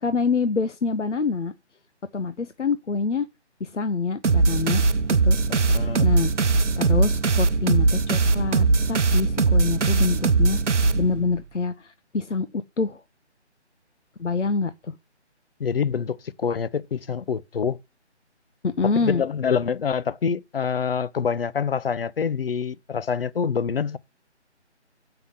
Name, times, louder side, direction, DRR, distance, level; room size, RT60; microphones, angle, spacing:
voice 1, 0.0-1.5 2.1-3.3 3.6-4.8 5.2-5.4 6.0-6.3 6.8-10.6 10.9-13.0 14.2-14.9 18.6-19.2, left 4 dB, 85° left, 0.9 m, -26 dB
sound 1, 4.2-11.4, right 3 dB, 90° right, 0.8 m, -20 dB
voice 2, 5.5-6.1 15.6-17.8 19.0-24.0, left 6 dB, 55° left, 0.7 m, -26 dB
7.9 x 5.8 x 7.2 m
figure-of-eight pair, 155°, 35 cm